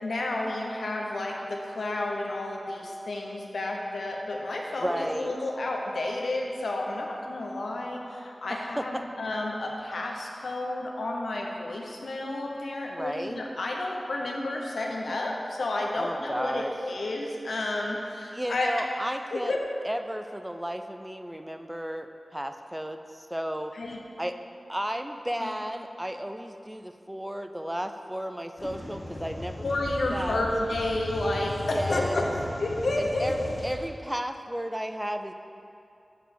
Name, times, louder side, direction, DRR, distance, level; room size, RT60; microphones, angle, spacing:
voice 1, 0.0-18.7 19.3-19.6 23.7-24.0 25.4-25.5 29.6-32.3 32.6-33.5, left 2 dB, 90° left, 0 dB, 1.0 m, -31 dB
voice 2, 4.8-5.3 8.5-9.0 12.9-13.4 15.9-16.7 18.3-19.5 19.8-23.7 24.2-24.4 24.7-29.7 29.9-30.4 31.7-32.3 33.0-35.3, equal, 10° right, 7 dB, 0.4 m, -33 dB
sound 1, 28.6-33.8, left 1 dB, 65° left, 1.7 m, -37 dB
7.8 x 4.9 x 6.5 m, 2.6 s
cardioid pair, 50°, 0 cm